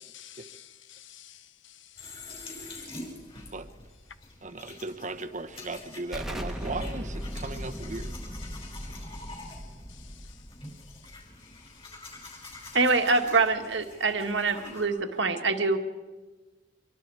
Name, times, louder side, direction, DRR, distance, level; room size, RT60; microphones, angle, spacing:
voice 1, 0.0-1.8 8.5-8.9 9.3-9.6, left 11 dB, 80° left, 13 dB, 0.9 m, -51 dB
sound 1, 2.0-14.9, left 2 dB, 30° left, 5.5 m, -46 dB
voice 2, 4.4-8.1, right 2 dB, 40° right, 8 dB, 1.2 m, -37 dB
Explosion, 6.1-11.6, equal, ahead, 1.5 m, -38 dB
voice 3, 12.7-15.8, right 3 dB, 70° right, 5 dB, 1.8 m, -25 dB
25.5 x 23.5 x 4.9 m, 1.3 s
head